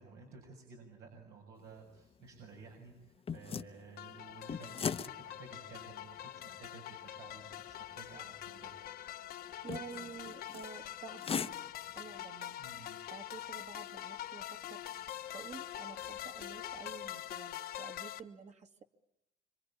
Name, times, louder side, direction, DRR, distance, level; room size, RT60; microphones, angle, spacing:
voice 1, 0.0-8.7 12.6-13.0, right 4 dB, 80° right, 1 dB, 7.1 m, -54 dB
sound 1, 1.6-17.4, left 6 dB, 35° left, 1.1 m, -46 dB
sound 2, 4.0-18.2, left 12 dB, 65° left, 1.5 m, -45 dB
voice 2, 9.6-11.7 11.9-12.6 13.1-14.8 15.3-18.8, right 6 dB, 40° right, 5 dB, 2.5 m, -50 dB
26.5 x 25.5 x 8.7 m, 0.85 s
cardioid pair, 110°, 17 cm